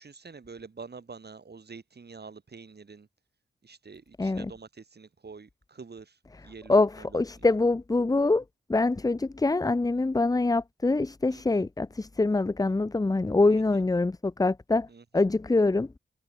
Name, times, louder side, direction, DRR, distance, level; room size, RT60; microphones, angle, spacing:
voice 1, 0.0-3.1 3.6-6.2 6.4-7.5 11.3-11.4 13.5-13.6 14.9-15.3, right 4 dB, 55° right, 6.1 m, -46 dB
voice 2, 4.2-4.5 6.7-8.4 8.7-14.9 15.1-15.9, left 3 dB, 20° left, 0.6 m, -24 dB
cardioid pair, 70°, 20 cm